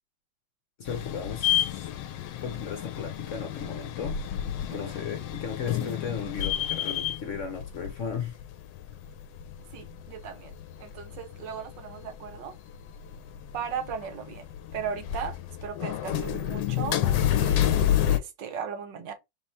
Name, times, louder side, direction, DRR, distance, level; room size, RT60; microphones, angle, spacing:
voice 1, 0.8-1.9 2.4-4.2 4.6-8.4, left 6 dB, 50° left, 1.1 m, -35 dB
sound 1, 0.9-18.2, left 11 dB, 75° left, 1.2 m, -30 dB
voice 2, 9.7-10.5 10.8-12.6 13.5-14.5 14.7-19.1, right 7 dB, 75° right, 1.5 m, -37 dB
3.5 x 3.0 x 4.1 m
omnidirectional pair, 2.0 m